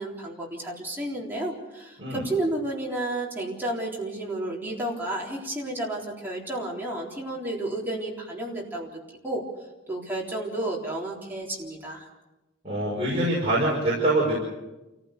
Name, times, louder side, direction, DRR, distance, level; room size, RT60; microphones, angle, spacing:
voice 1, 0.0-9.4 9.9-12.1, right 1 dB, 10° right, -4 dB, 3.8 m, -32 dB
voice 2, 12.6-14.4, right 1 dB, 30° right, -6 dB, 5.5 m, -24 dB
28.0 x 15.5 x 6.8 m, 1.1 s
head